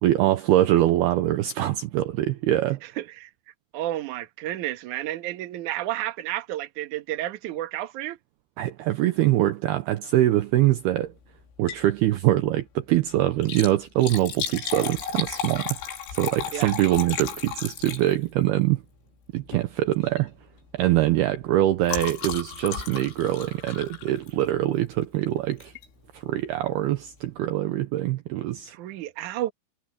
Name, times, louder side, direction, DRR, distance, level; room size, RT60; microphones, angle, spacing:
voice 1, 0.0-2.8 8.6-11.1 11.6-15.8 16.2-18.8 19.3-20.3 20.7-25.7 26.1-28.7, right 14 dB, 85° right, 2.3 m, -23 dB
voice 2, 2.8-3.3 3.7-8.2 16.5-16.7 28.7-29.5, right 14 dB, 70° right, 1.9 m, -31 dB
Liquid, 11.5-11.9 12.3-12.4 13.3-18.4 19.4-19.7 20.0-20.3 20.6-24.7 25.6-25.9 26.4-26.5 26.7-26.8, left 7 dB, 90° left, 6.6 m, -34 dB
omnidirectional pair, 5.7 m